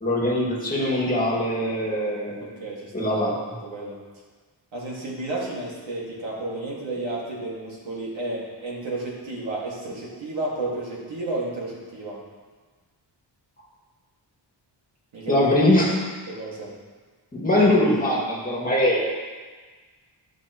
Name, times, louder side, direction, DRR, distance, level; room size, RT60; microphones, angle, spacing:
voice 1, 0.0-2.4 2.9-3.3 15.3-16.0 17.3-19.0, left 1 dB, 20° left, -5 dB, 2.0 m, -21 dB
voice 2, 2.4-4.0 4.7-12.2 15.1-15.5 16.3-16.8, right 2 dB, 75° right, -4 dB, 2.1 m, -32 dB
11.5 x 6.0 x 3.0 m, 1.4 s
wide cardioid pair, 135°, 46 cm